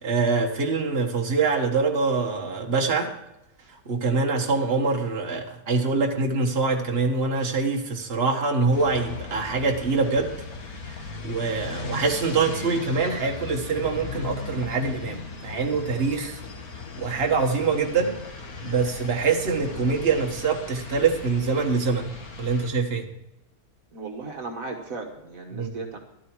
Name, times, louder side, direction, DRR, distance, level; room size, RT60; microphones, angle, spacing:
voice 1, 0.0-3.1 3.9-10.3 11.2-16.4 17.0-18.2 18.6-22.1 22.4-23.1 25.5-25.7, right 4 dB, 40° right, 1 dB, 1.8 m, -24 dB
sound 1, 8.7-22.7, left 4 dB, 70° left, 2.1 m, -38 dB
voice 2, 23.9-26.0, right 3 dB, 60° right, 2 dB, 1.8 m, -36 dB
13.5 x 12.5 x 4.7 m, 0.84 s
omnidirectional pair, 1.6 m